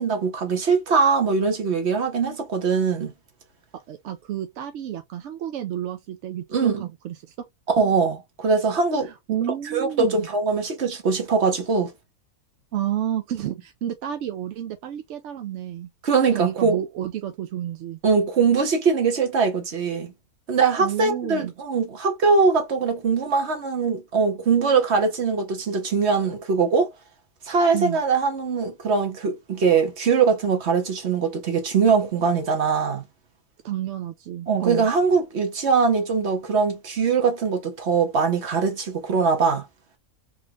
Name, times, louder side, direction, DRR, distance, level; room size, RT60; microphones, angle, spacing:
voice 1, 0.0-3.1 6.5-6.9 7.7-9.1 9.7-11.9 16.0-16.8 18.0-20.1 20.5-26.9 27.5-33.0 34.5-39.6, right 5 dB, 50° right, 1.3 m, -22 dB
voice 2, 3.7-7.3 9.0-10.3 12.7-15.9 16.3-18.0 20.8-21.5 27.7-28.0 33.6-34.9, right 11 dB, 65° right, 0.7 m, -30 dB
3.9 x 3.2 x 2.4 m
omnidirectional pair, 1.6 m